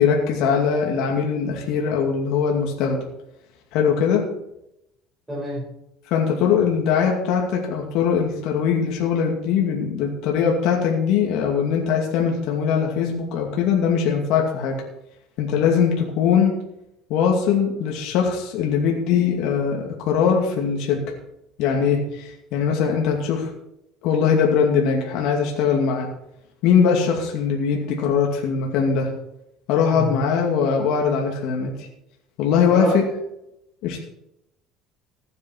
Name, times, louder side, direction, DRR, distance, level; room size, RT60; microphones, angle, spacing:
voice 1, 0.0-3.0 3.7-4.3 6.1-14.8 15.4-16.6 17.1-21.0 21.6-23.5 24.0-26.1 26.6-29.1 29.7-31.7 32.4-33.1 33.8-34.0, left 6 dB, 65° left, 0 dB, 2.4 m, -21 dB
voice 2, 5.3-5.6 29.9-30.2 32.7-33.0, equal, 5° right, -6 dB, 5.7 m, -27 dB
15.0 x 9.4 x 4.7 m, 0.84 s
cardioid pair, 145°, 0 cm